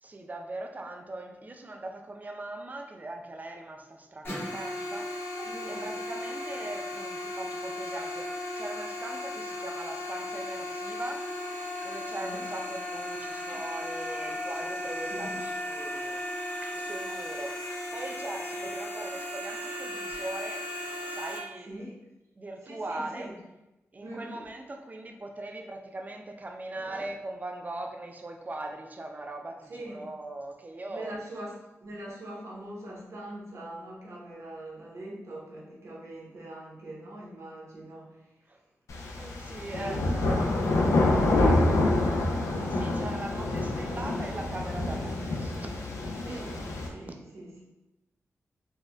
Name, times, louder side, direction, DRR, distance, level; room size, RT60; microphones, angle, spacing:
voice 1, 0.0-11.3 11.8-16.2 16.7-17.5 17.9-20.6 21.1-21.7 22.4-23.3 23.9-31.2 38.5-38.6 39.0-41.1 42.6-46.4, right 2 dB, 30° right, 3 dB, 0.4 m, -40 dB
sound 1, 4.2-21.4, left 1 dB, 55° left, 0.8 m, -36 dB
voice 2, 5.4-5.8 12.2-12.4 15.1-15.4 21.7-22.0 22.6-23.3 24.0-24.5 29.7-30.0 30.9-31.5 31.8-38.2 39.8-39.9 40.6-40.9 46.2-46.6 46.9-47.6, right 1 dB, 70° right, -5 dB, 0.9 m, -42 dB
sound 2, 38.9-46.9, left 2 dB, 90° left, 0.4 m, -27 dB
4.3 x 2.2 x 2.2 m, 0.97 s
cardioid pair, 70°, 5 cm